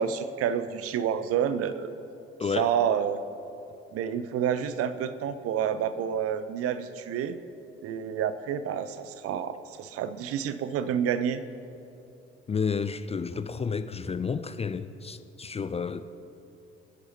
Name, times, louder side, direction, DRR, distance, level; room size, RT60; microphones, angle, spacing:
voice 1, 0.0-1.9 2.6-3.2 3.9-7.4 7.8-11.4, right 8 dB, 45° right, 0.7 m, -29 dB
voice 2, 2.4-2.7 12.5-16.0, left 5 dB, 20° left, 0.5 m, -31 dB
30.0 x 10.5 x 3.0 m
figure-of-eight pair, 50°, 31 cm